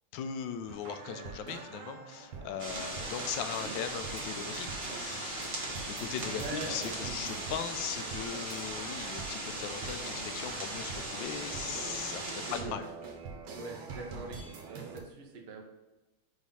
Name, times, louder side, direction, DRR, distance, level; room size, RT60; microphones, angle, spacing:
voice 1, 0.1-5.6 5.9-12.9, left 8 dB, 75° left, 9 dB, 1.2 m, -39 dB
sound 1, 0.7-15.0, right 4 dB, 80° right, 1.8 m, -45 dB
Bicycle, 2.2-13.1, equal, 15° right, 0.6 m, -55 dB
sound 2, 2.6-12.6, right 1 dB, 35° right, 1.3 m, -39 dB
voice 2, 6.2-7.1 12.5-12.8 13.5-15.6, right 3 dB, 55° right, 0 dB, 0.7 m, -43 dB
5.0 x 3.9 x 5.5 m, 1.1 s
omnidirectional pair, 2.3 m